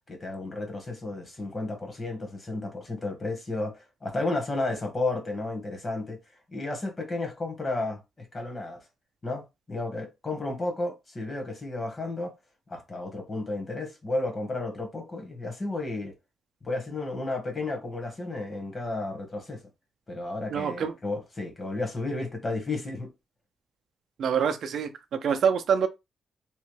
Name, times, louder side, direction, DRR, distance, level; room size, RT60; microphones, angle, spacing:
voice 1, 0.0-6.2 6.5-8.8 9.2-12.3 12.7-16.1 16.6-19.6 20.1-23.1, left 2 dB, 30° left, 1.1 m, -32 dB
voice 2, 20.5-20.9 24.2-25.9, right 7 dB, 70° right, 0.4 m, -26 dB
3.0 x 2.1 x 3.1 m
cardioid pair, 105°, 0 cm